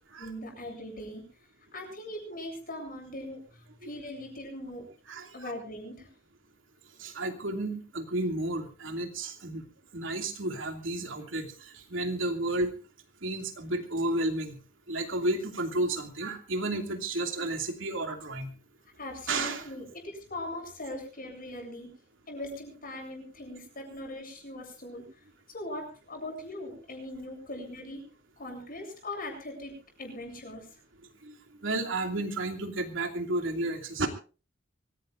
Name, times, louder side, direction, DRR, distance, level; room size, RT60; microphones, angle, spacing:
voice 1, 0.2-1.2 1.7-4.9 5.3-6.1 19.0-21.9 22.3-28.0 28.4-30.8, left 1 dB, 50° left, 3 dB, 7.8 m, -40 dB
voice 2, 5.1-5.5 7.0-9.6 9.9-12.7 13.2-14.6 14.9-18.5 19.3-19.6 31.2-31.4 31.6-34.1, right 2 dB, 85° right, 4 dB, 2.7 m, -32 dB
24.5 x 16.5 x 2.6 m, 0.35 s
head